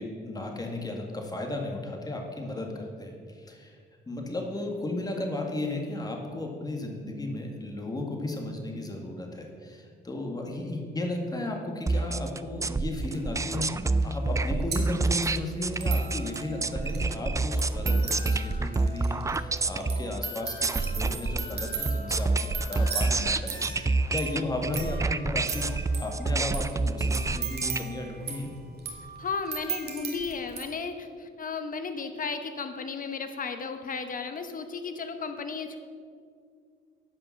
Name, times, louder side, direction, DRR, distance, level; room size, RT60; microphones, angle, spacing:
voice 1, 0.0-3.8 4.1-13.7 14.0-22.3 22.7-25.7 26.0-28.5, left 2 dB, 20° left, 1 dB, 1.9 m, -34 dB
sound 1, 11.9-27.8, right 3 dB, 15° right, 0.3 m, -28 dB
sound 2, 13.1-13.2 14.0-14.1 14.3-30.6, right 5 dB, 55° right, 1.9 m, -38 dB
voice 2, 29.2-35.8, left 5 dB, 45° left, 8 dB, 0.9 m, -34 dB
10.5 x 5.6 x 7.2 m, 2.2 s
cardioid pair, 90°, 20 cm